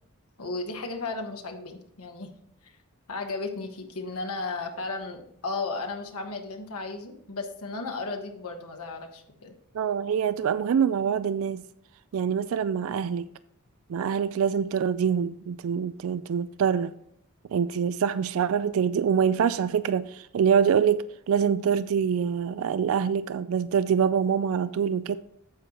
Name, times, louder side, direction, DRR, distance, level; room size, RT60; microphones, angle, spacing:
voice 1, 0.4-2.3 2.6-2.7 3.1-9.5, left 3 dB, 85° left, 1.2 m, -34 dB
voice 2, 9.7-11.6 12.1-13.3 13.9-16.9 17.5-25.2, right 7 dB, 65° right, 0.3 m, -25 dB
9.4 x 7.7 x 3.0 m
head